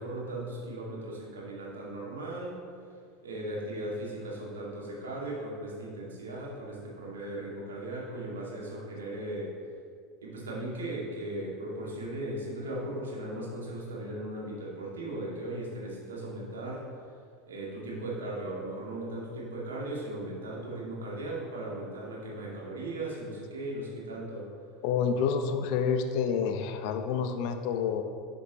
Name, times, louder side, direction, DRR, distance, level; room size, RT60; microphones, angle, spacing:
voice 1, 0.0-2.6 3.2-9.6 10.2-16.9 17.5-24.5, right 1 dB, 70° right, -4 dB, 2.2 m, -37 dB
voice 2, 24.8-28.0, left 6 dB, 55° left, 7 dB, 0.7 m, -28 dB
11.0 x 7.0 x 3.1 m, 2.2 s
figure-of-eight pair, 75°, 0 cm